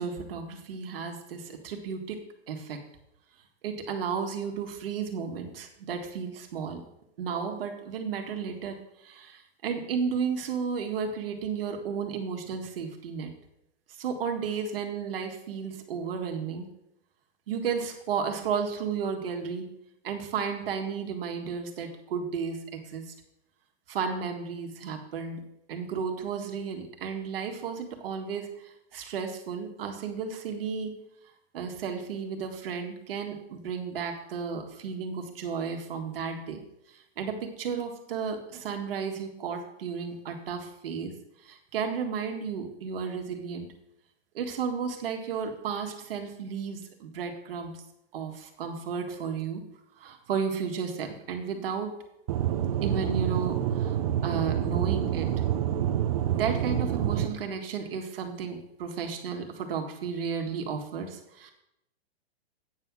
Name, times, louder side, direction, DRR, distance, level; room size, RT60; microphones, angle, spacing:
voice 1, 0.0-2.2 2.5-2.8 3.6-6.8 7.2-8.8 9.0-13.3 14.0-16.7 17.5-19.7 20.0-23.1 23.9-25.4 25.7-30.9 31.5-36.6 36.9-41.1 41.4-43.7 44.3-47.8 48.1-49.6 50.0-51.9 52.8-54.0 54.2-55.3 56.3-61.5, right 6 dB, 60° right, 3 dB, 1.7 m, -33 dB
Aircraft / Engine, 52.3-57.3, right 10 dB, 35° right, 0.6 m, -27 dB
8.9 x 5.6 x 6.1 m, 0.82 s
hypercardioid pair, 160°, 32 cm